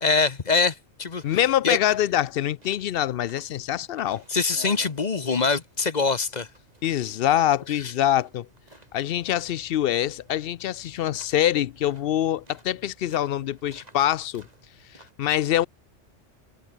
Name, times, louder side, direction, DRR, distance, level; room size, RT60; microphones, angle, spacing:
voice 1, 0.0-1.2 1.6-1.8 4.3-6.5, left 4 dB, 40° left, 1.0 m, -23 dB
sound 1, 1.1-15.1, right 1 dB, 35° right, 3.9 m, -53 dB
voice 2, 1.2-4.2 6.8-8.5 8.9-14.5 14.9-15.7, left 12 dB, 60° left, 0.6 m, -24 dB
omnidirectional pair, 1.3 m